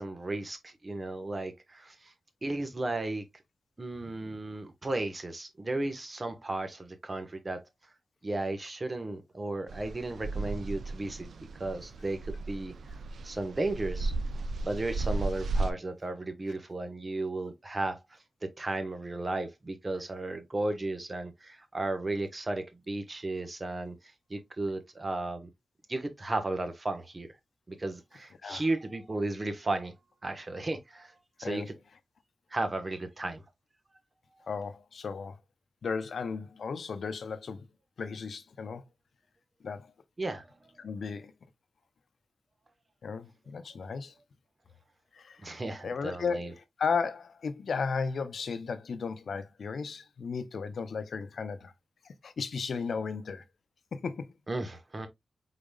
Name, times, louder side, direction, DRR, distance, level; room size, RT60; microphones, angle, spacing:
voice 1, 0.0-2.1 2.4-3.2 3.8-7.6 8.2-11.3 11.6-12.7 13.2-14.1 14.6-23.9 24.3-25.5 25.9-27.3 27.7-29.9 30.2-31.7 32.5-33.4 34.3-34.4 40.2-40.8 45.4-46.5 54.5-55.1, right 2 dB, 40° right, 1.2 m, -34 dB
sound 1, 9.7-15.7, right 3 dB, 85° right, 0.4 m, -34 dB
voice 2, 34.5-35.4 35.8-37.7 38.0-38.8 39.6-39.9 40.8-41.3 43.0-44.1 45.1-45.5 45.8-46.5 46.8-51.7 52.0-53.4 53.9-54.3, left 5 dB, 80° left, 0.6 m, -35 dB
5.0 x 4.0 x 2.3 m
cardioid pair, 55°, 0 cm